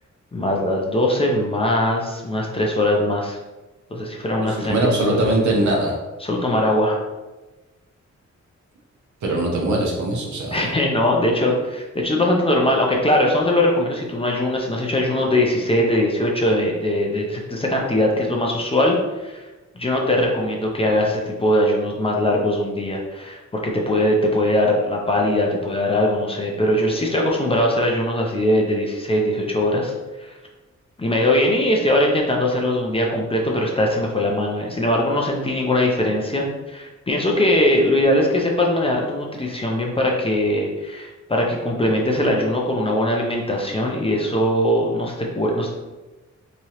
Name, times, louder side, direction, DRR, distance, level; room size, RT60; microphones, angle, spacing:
voice 1, 0.3-3.4 3.9-5.3 6.2-7.0 10.5-19.5 19.8-29.9 30.2-30.4 31.0-45.7, left 1 dB, 20° left, -1 dB, 0.4 m, -21 dB
voice 2, 4.4-5.9 9.2-10.7, right 1 dB, 80° right, -2 dB, 0.9 m, -21 dB
3.6 x 3.1 x 2.9 m, 1.1 s
wide cardioid pair, 175°, 29 cm